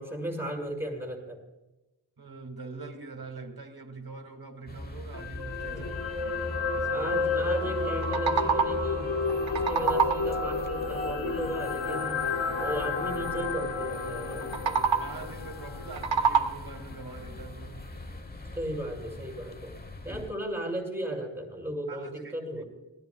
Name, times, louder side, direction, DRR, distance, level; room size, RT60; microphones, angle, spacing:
voice 1, 0.0-1.4 5.7-6.0 6.9-9.1 9.5-12.3 12.6-14.8 18.5-19.8 20.0-22.6, right 1 dB, 5° right, 5.9 m, -35 dB
voice 2, 2.2-6.0 6.7-7.1 9.7-10.0 15.0-17.9 20.0-20.3 21.9-22.6, right 3 dB, 55° right, 2.6 m, -44 dB
sound 1, 4.7-20.3, left 1 dB, 20° left, 1.1 m, -41 dB
sound 2, 5.1-17.4 17.8-17.9, left 4 dB, 75° left, 1.9 m, -32 dB
sound 3, 7.8-9.0 9.3-10.4 14.4-15.3 15.8-16.9, right 6 dB, 80° right, 1.0 m, -27 dB
26.5 x 18.5 x 2.4 m
wide cardioid pair, 110°, 45 cm